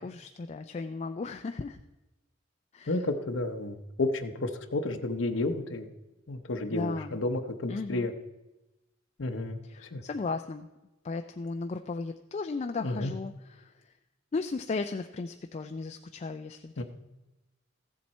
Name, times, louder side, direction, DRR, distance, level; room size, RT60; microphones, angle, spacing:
voice 1, 0.0-1.8 2.7-3.0 6.7-7.2 7.7-8.1 9.6-10.7 11.0-13.7 14.3-16.8, left 4 dB, 35° left, 7 dB, 0.3 m, -35 dB
voice 2, 2.9-5.9 6.3-8.1 9.2-10.0 12.8-13.1 16.8-16.9, left 2 dB, 65° left, 6 dB, 0.8 m, -31 dB
14.5 x 7.4 x 4.2 m, 1.0 s
head